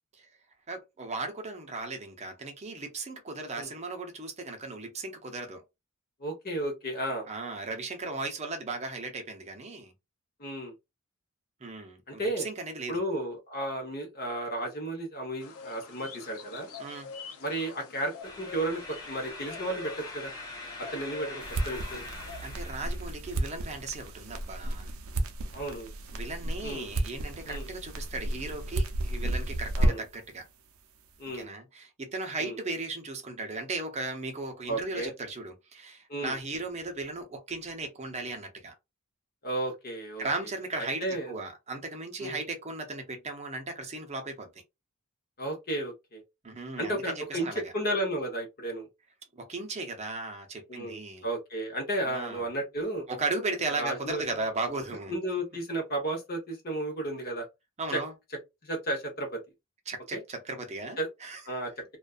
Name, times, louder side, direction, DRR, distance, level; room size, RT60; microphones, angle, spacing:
voice 1, 0.7-5.6 7.3-9.9 11.6-13.0 16.8-17.1 22.4-24.9 26.1-30.4 31.3-38.7 40.2-44.5 46.4-47.7 49.4-51.3 52.0-52.4 53.1-55.1 57.8-58.1 59.9-61.4, right 3 dB, 30° right, 0.6 m, -36 dB
voice 2, 6.2-7.3 10.4-10.7 12.1-12.5 12.9-16.7 17.4-20.3 20.8-22.1 25.5-25.9 26.6-26.9 27.4-27.7 29.8-30.0 31.2-31.5 32.4-32.6 34.7-35.1 36.1-36.4 39.4-40.3 40.8-41.3 42.2-42.4 45.4-46.2 46.8-48.9 50.7-53.1 53.7-54.5 55.1-57.5 57.9-58.0 58.6-59.4 60.1-60.2 61.0-61.1 61.5-61.8, right 1 dB, 45° left, 0.9 m, -33 dB
sound 1, 15.4-22.4, left 5 dB, 85° left, 0.6 m, -46 dB
sound 2, 18.2-23.2, left 2 dB, 20° left, 0.8 m, -43 dB
sound 3, 21.4-30.3, right 1 dB, 80° right, 0.5 m, -32 dB
2.4 x 2.2 x 2.3 m
head